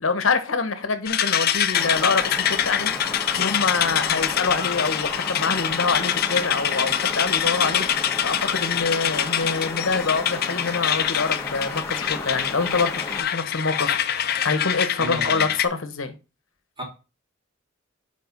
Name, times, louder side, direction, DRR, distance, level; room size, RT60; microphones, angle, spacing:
voice 1, 0.0-16.1, left 4 dB, 75° left, 0.9 m, -26 dB
sound 1, 1.1-15.7, left 10 dB, 50° left, 0.5 m, -25 dB
sound 2, 1.7-13.2, left 2 dB, 15° left, 1.1 m, -34 dB
voice 2, 15.0-15.5 16.8-16.9, right 1 dB, 25° right, 2.4 m, -32 dB
5.0 x 4.7 x 5.3 m
head